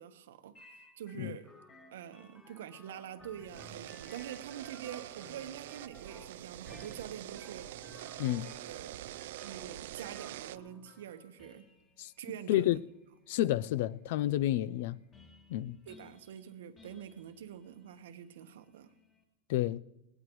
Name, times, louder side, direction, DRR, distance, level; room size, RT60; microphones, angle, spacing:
voice 1, 0.0-1.5 1.9-7.7 8.5-9.0 9.4-11.7 12.2-12.7 15.9-18.9, right 9 dB, 90° right, 1.1 m, -46 dB
sound 1, 0.5-19.2, left 2 dB, 15° left, 2.1 m, -59 dB
sound 2, 3.4-10.6, right 14 dB, 70° right, 0.4 m, -45 dB
voice 2, 12.5-12.8 13.3-15.0 15.5-15.8 19.5-19.8, left 14 dB, 60° left, 0.4 m, -30 dB
19.5 x 18.5 x 3.1 m
supercardioid pair, 165°, 0 cm